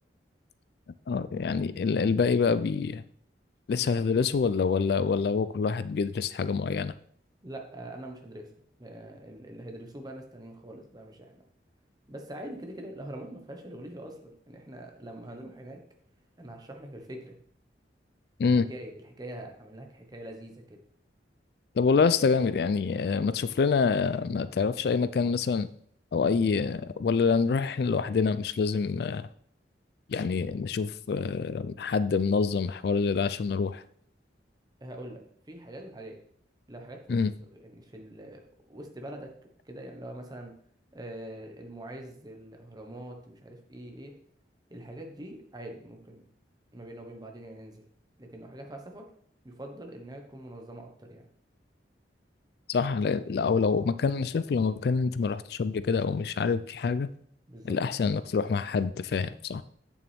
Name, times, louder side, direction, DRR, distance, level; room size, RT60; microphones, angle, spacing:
voice 1, 1.1-3.0 3.7-6.9 18.4-18.7 21.8-25.7 26.1-29.3 30.1-33.8 37.1-37.3 52.7-57.1 57.6-59.6, left 5 dB, 60° left, 14 dB, 0.3 m, -26 dB
voice 2, 3.8-4.2 7.4-8.5 8.8-11.4 12.1-15.8 16.4-17.4 18.4-20.8 34.8-36.2 36.7-38.4 38.7-39.3 39.6-40.5 40.9-44.1 44.7-46.2 46.7-47.8 48.2-49.1 49.4-51.3 57.5-57.8, right 1 dB, 20° right, 3 dB, 1.2 m, -43 dB
8.4 x 7.2 x 3.5 m, 0.63 s
head